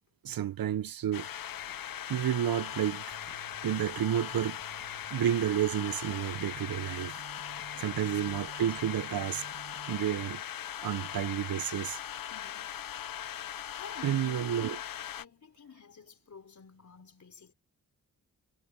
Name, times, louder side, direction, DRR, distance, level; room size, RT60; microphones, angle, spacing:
voice 1, 0.2-1.4 2.1-3.2 3.6-4.6 5.1-7.2 7.8-9.4 9.9-10.4 10.8-12.0 14.0-14.8, right 10 dB, 80° right, 0.7 m, -31 dB
sound 1, 1.1-15.2, left 10 dB, 70° left, 0.7 m, -40 dB
sound 2, 3.1-10.0, right 9 dB, 55° right, 2.1 m, -53 dB
voice 2, 7.7-8.2 12.3-12.8 13.7-14.8 15.2-17.5, left 6 dB, 55° left, 4.4 m, -51 dB
wide cardioid pair, 135°, 35 cm